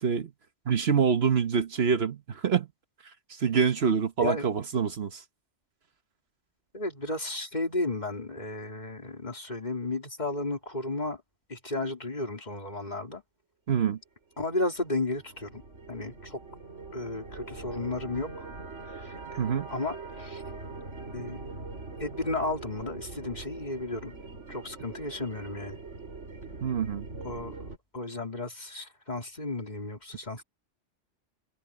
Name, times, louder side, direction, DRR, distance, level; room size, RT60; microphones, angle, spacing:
voice 1, 0.7-2.7 3.3-5.2 13.7-14.0 19.4-19.7 26.6-27.1, right 6 dB, 60° right, 1.2 m, -26 dB
voice 2, 6.7-11.2 11.5-13.2 14.4-15.6 15.9-16.4 16.9-18.5 18.8-20.4 21.1-21.4 22.0-24.1 24.5-25.8 27.2-27.5 27.9-30.4, left 2 dB, 35° left, 3.2 m, -33 dB
sound 1, 14.3-27.8, right 3 dB, 80° right, 4.6 m, -43 dB
omnidirectional pair, 1.2 m